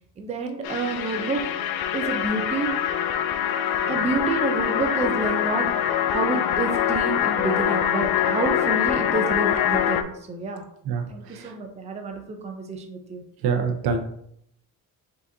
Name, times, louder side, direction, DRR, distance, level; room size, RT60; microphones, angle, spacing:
voice 1, 0.2-1.4 1.9-2.7 3.9-5.7 6.1-10.6 11.1-13.2, right 3 dB, 20° right, 3 dB, 0.5 m, -29 dB
sound 1, 0.6-10.0, left 10 dB, 80° left, 0.5 m, -24 dB
voice 2, 13.4-14.0, right 5 dB, 80° right, 5 dB, 0.8 m, -25 dB
5.0 x 3.9 x 2.7 m, 0.72 s
cardioid pair, 170°, 36 cm